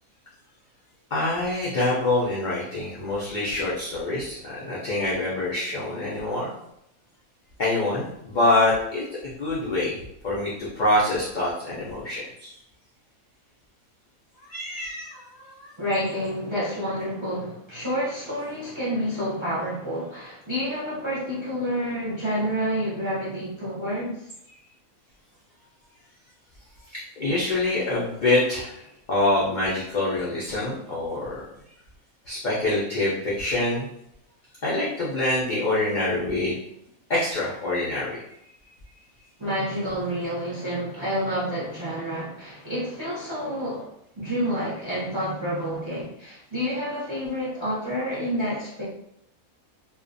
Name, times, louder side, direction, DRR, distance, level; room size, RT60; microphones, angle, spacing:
voice 1, 1.1-6.6 7.6-10.0 10.2-12.5 14.5-15.7 26.9-28.8 29.1-31.4 32.3-33.9 34.6-36.6 37.1-38.2, left 2 dB, 75° left, -7 dB, 0.4 m, -25 dB
voice 2, 15.8-24.3 39.4-48.8, equal, 30° right, -8 dB, 0.5 m, -29 dB
2.4 x 2.1 x 2.5 m, 0.77 s
omnidirectional pair, 1.5 m